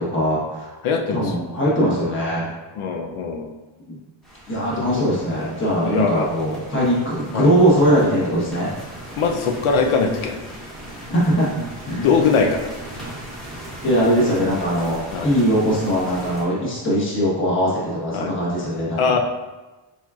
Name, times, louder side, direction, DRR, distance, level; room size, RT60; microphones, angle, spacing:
voice 1, 0.0-0.7 1.1-2.5 3.9-4.0 4.5-8.7 11.1-11.5 11.9-12.1 13.8-19.2, equal, 25° left, -6 dB, 1.3 m, -20 dB
voice 2, 0.8-1.2 2.8-3.5 4.8-5.0 5.3-5.5 5.8-6.3 7.3-7.5 9.2-10.4 11.9-12.7 15.1-15.3 18.1-18.3 19.0-19.2, left 5 dB, 85° left, 3 dB, 0.7 m, -21 dB
sound 1, 4.2-16.4, right 1 dB, ahead, 1.1 m, -38 dB
4.4 x 4.2 x 2.4 m, 1.1 s
wide cardioid pair, 155°, 48 cm